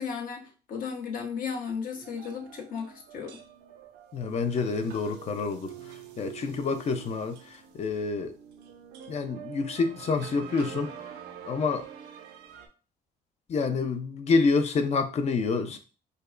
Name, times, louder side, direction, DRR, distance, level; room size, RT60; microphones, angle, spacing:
voice 1, 0.0-3.4, left 6 dB, 55° left, 2 dB, 1.0 m, -35 dB
sound 1, 2.0-12.7, right 8 dB, 90° right, 0.6 m, -46 dB
voice 2, 4.1-8.3 9.1-10.9 11.4-11.9 13.5-15.8, left 4 dB, 40° left, 8 dB, 0.6 m, -28 dB
5.0 x 2.2 x 2.5 m, 0.35 s
cardioid pair, 110°, 17 cm